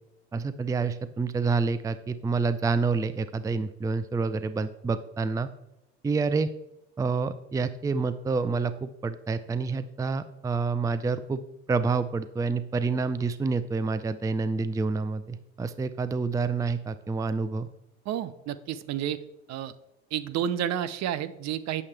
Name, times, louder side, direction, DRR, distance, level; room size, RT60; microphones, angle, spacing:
voice 1, 0.3-5.5 6.0-6.5 7.0-11.4 11.7-17.7, right 4 dB, 10° right, 13 dB, 0.4 m, -28 dB
voice 2, 18.1-19.2 19.5-19.7 20.1-21.8, right 10 dB, 55° right, 13 dB, 0.7 m, -30 dB
8.8 x 6.9 x 3.3 m, 0.86 s
supercardioid pair, 80°, 33 cm